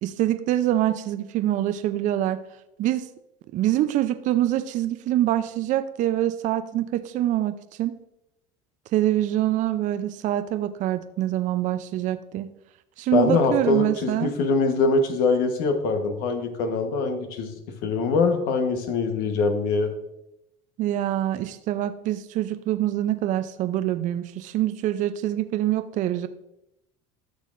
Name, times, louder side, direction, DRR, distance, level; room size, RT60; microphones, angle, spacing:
voice 1, 0.0-2.4 2.8-3.1 3.5-7.9 8.9-12.5 13.0-14.3 20.8-26.3, right 13 dB, 50° right, 11 dB, 0.5 m, -25 dB
voice 2, 13.1-17.5 17.8-19.9, left 4 dB, 65° left, 6 dB, 1.1 m, -23 dB
13.0 x 6.3 x 2.5 m, 0.85 s
supercardioid pair, 90°, 17 cm